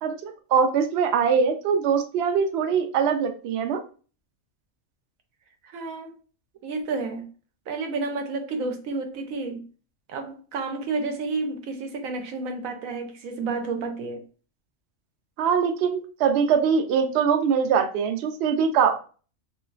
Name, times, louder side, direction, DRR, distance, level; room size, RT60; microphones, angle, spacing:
voice 1, 0.0-3.8 15.4-19.0, right 6 dB, 65° right, 0.7 m, -22 dB
voice 2, 5.6-6.1 6.6-7.3 7.7-9.6 10.1-14.2, right 3 dB, 85° right, 1.1 m, -30 dB
3.1 x 3.0 x 2.4 m
omnidirectional pair, 1.4 m